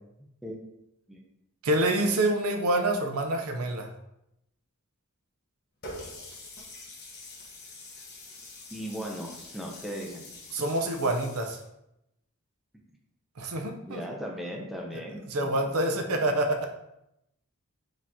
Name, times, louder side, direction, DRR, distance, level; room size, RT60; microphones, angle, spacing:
voice 1, 1.6-3.9 10.5-11.6 13.4-14.0 15.3-16.7, right 1 dB, 90° right, 4 dB, 0.6 m, -27 dB
Water tap faucet, 5.8-11.6, left 2 dB, 50° left, 1.1 m, -45 dB
voice 2, 8.7-10.2 10.6-10.7 13.6-15.7 16.1-16.2, equal, ahead, -1 dB, 0.6 m, -38 dB
5.0 x 2.9 x 3.6 m, 0.84 s
head